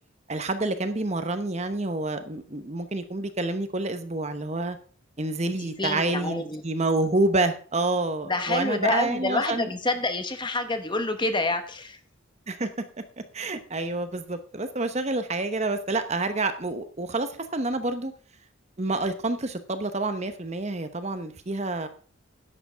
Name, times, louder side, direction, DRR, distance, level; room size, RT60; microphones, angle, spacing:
voice 1, 0.3-4.8 5.2-9.7 12.5-12.7 13.3-18.1 18.8-21.9, right 2 dB, 30° right, 9 dB, 0.9 m, -28 dB
voice 2, 5.6-6.6 8.3-12.0, left 2 dB, 20° left, 8 dB, 1.1 m, -27 dB
11.0 x 7.9 x 5.6 m, 0.42 s
head